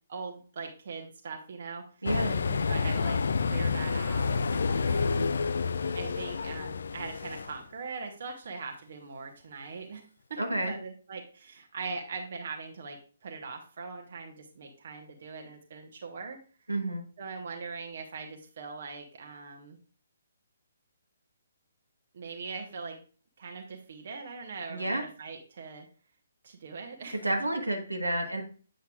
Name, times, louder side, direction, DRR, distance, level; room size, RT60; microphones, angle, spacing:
voice 1, 0.1-2.0 2.4-5.4 5.9-10.0 10.3-10.4 10.7-16.4 17.2-19.8 22.1-23.0 23.4-25.9 26.4-27.3, right 4 dB, 50° right, 3 dB, 1.1 m, -41 dB
voice 2, 2.0-2.4 5.1-5.4 10.4-10.7 16.7-17.0 24.7-25.0 27.2-28.4, right 1 dB, 80° right, 3 dB, 1.3 m, -30 dB
sound 1, 2.1-7.6, left 5 dB, 60° left, 0.3 m, -29 dB
8.2 x 6.3 x 2.4 m, 0.40 s
figure-of-eight pair, 135°, 0 cm